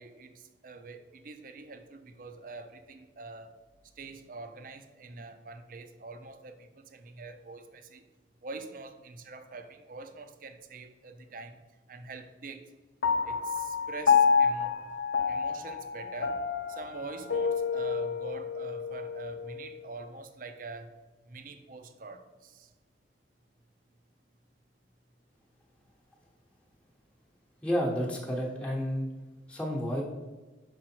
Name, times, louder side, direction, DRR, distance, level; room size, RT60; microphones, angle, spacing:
voice 1, 0.0-3.5 4.0-8.0 8.4-11.6 11.9-12.7 13.2-14.7 15.3-16.4 16.7-20.9 21.3-22.7, right 3 dB, 45° right, 8 dB, 0.6 m, -45 dB
Piano, 13.0-19.7, left 6 dB, 70° left, 0.5 m, -28 dB
voice 2, 27.6-29.1 29.5-30.0, equal, 5° left, -3 dB, 1.0 m, -30 dB
6.3 x 5.0 x 4.4 m, 1.2 s
head